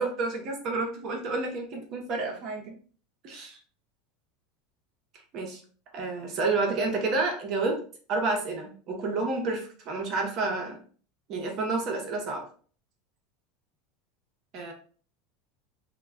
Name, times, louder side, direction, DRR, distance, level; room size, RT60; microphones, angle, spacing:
voice 1, 0.0-2.7 3.2-3.6 5.3-5.6 5.9-7.8 8.1-10.8 11.3-12.5 14.5-14.7, right 3 dB, 40° right, 1 dB, 0.7 m, -30 dB
2.2 x 2.1 x 3.5 m, 0.42 s
supercardioid pair, 150°, 0 cm